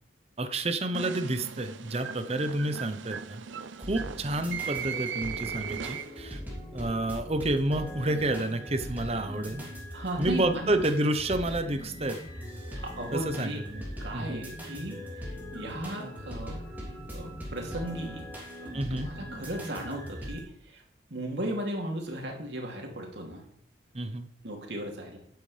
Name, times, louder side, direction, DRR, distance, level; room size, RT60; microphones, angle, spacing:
voice 1, 0.4-3.5 3.8-6.4 6.7-9.6 10.2-12.2 13.1-13.8 14.1-14.4 18.7-19.1 23.9-24.3, right 1 dB, 35° right, 9 dB, 0.8 m, -29 dB
sound 1, 0.9-6.4, right 7 dB, 85° right, 0.6 m, -38 dB
sound 2, 3.8-20.4, equal, 10° right, 3.1 m, -40 dB
voice 2, 9.9-10.8 12.8-13.6 14.0-16.6 17.1-18.3 18.6-20.8 21.1-23.4 24.4-25.2, right 1 dB, 70° right, 0 dB, 2.8 m, -36 dB
12.5 x 9.3 x 3.3 m, 0.65 s
head